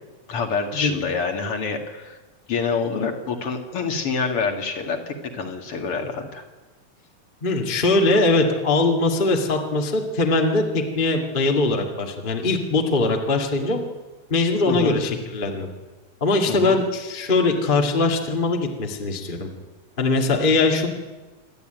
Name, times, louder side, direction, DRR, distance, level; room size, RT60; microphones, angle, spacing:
voice 1, 0.3-2.2 2.5-6.4 14.7-15.0 16.5-16.8, left 5 dB, 45° left, 4 dB, 2.7 m, -27 dB
voice 2, 7.4-13.8 14.3-15.7 16.2-19.5 20.0-20.9, left 3 dB, 20° left, 1 dB, 1.6 m, -21 dB
27.0 x 12.5 x 9.2 m, 1.2 s
omnidirectional pair, 4.0 m